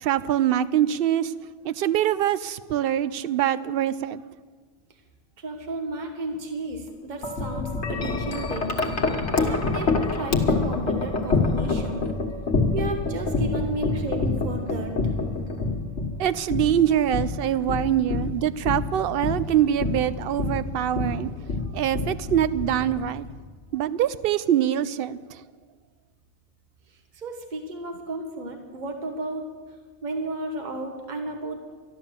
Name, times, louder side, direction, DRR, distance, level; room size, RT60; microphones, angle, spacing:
voice 1, 0.0-1.3 1.6-4.2 16.2-21.3 21.7-23.3 23.7-25.4, right 11 dB, 60° right, 0.7 m, -24 dB
voice 2, 5.4-8.7 9.3-12.1 12.7-14.9 27.1-29.4 30.0-31.6, right 2 dB, 40° right, 1.4 m, -33 dB
Wind chime, 7.2-23.4, left 3 dB, 70° left, 1.7 m, -27 dB
12.5 x 12.0 x 7.4 m
omnidirectional pair, 1.2 m